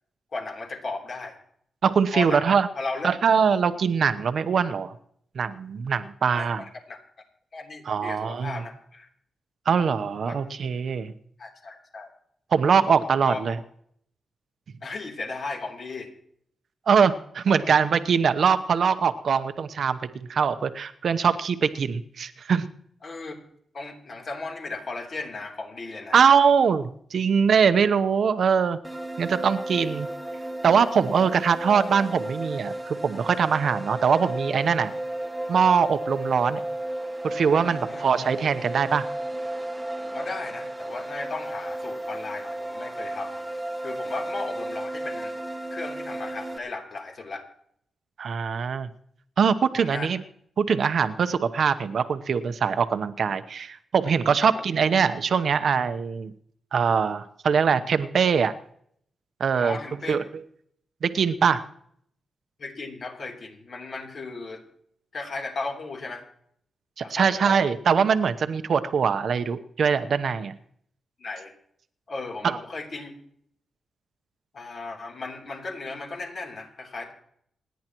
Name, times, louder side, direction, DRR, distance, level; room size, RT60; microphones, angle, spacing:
voice 1, 0.3-1.3 2.1-3.1 6.4-7.0 7.5-9.1 10.2-10.4 11.4-12.1 13.2-13.6 14.8-16.1 17.5-17.7 23.0-23.4 23.7-26.2 37.7-38.0 40.0-43.4 43.8-45.3 45.7-47.4 49.8-50.1 54.4-54.7 59.6-60.2 62.6-64.6 65.1-66.2 67.0-67.7 70.3-70.4 71.2-71.5 72.1-73.1 74.5-77.1, left 3 dB, 50° left, 1 dB, 3.3 m, -36 dB
voice 2, 1.8-2.7 3.0-4.9 5.3-6.6 7.9-8.6 9.7-11.1 12.5-13.6 16.9-22.7 26.1-28.8 29.2-30.1 30.6-34.9 35.5-36.6 37.2-39.0 48.2-48.9 49.4-50.2 50.6-56.3 56.7-58.5 59.4-59.8 60.1-60.2 61.0-61.6 67.0-70.5 72.4-72.6, right 6 dB, 65° right, 11 dB, 0.9 m, -22 dB
sound 1, 28.8-46.6, right 1 dB, 5° right, 1.2 m, -33 dB
27.5 x 10.5 x 3.1 m, 0.67 s
cardioid pair, 100°, 0 cm